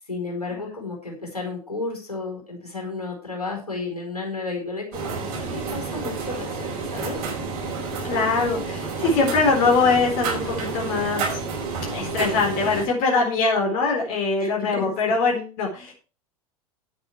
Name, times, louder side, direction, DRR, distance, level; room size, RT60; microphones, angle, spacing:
voice 1, 0.1-7.2 12.2-12.4 14.4-14.9, left 3 dB, 85° left, 0 dB, 4.5 m, -32 dB
sound 1, 4.9-12.9, right 4 dB, 50° right, 5.5 m, -30 dB
voice 2, 8.0-11.4 11.9-15.9, left 4 dB, 45° left, 0 dB, 4.0 m, -22 dB
10.5 x 8.8 x 4.6 m, 0.35 s
figure-of-eight pair, 85°, 19 cm